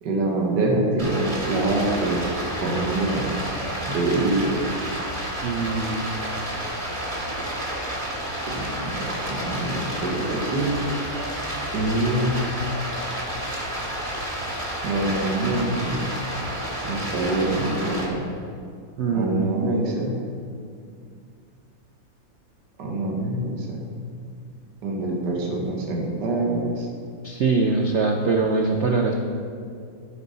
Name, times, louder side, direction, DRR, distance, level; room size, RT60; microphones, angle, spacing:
voice 1, 0.0-2.3 2.6-3.3 3.9-4.7 8.5-10.8 11.7-12.4 14.8-16.0 16.8-18.2 19.1-20.2 22.8-23.8 24.8-26.9, right 2 dB, 65° right, -1 dB, 1.8 m, -25 dB
Stream, 1.0-18.0, right 1 dB, 20° right, 1.7 m, -30 dB
voice 2, 5.4-6.0 19.0-19.5 27.2-29.1, right 4 dB, 85° right, 1 dB, 0.6 m, -22 dB
13.5 x 5.5 x 4.1 m, 2.3 s
omnidirectional pair, 2.1 m